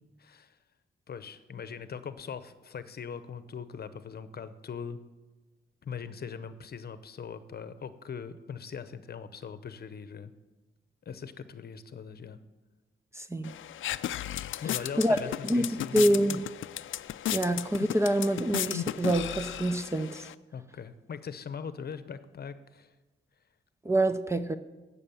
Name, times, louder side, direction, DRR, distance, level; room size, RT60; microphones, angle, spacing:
voice 1, 0.2-0.6 1.1-5.0 5.8-10.3 11.1-12.4 14.6-16.0 16.3-16.4 20.5-22.9, left 6 dB, 50° left, 12 dB, 0.8 m, -41 dB
voice 2, 13.2-13.5 15.0-15.2 15.4-15.6 15.9-16.5 17.3-20.2 23.8-24.6, right 1 dB, 15° right, 10 dB, 0.5 m, -26 dB
sound 1, 13.4-20.3, left 12 dB, 80° left, 0.4 m, -35 dB
12.5 x 8.4 x 7.1 m, 1.2 s
wide cardioid pair, 125°, 20 cm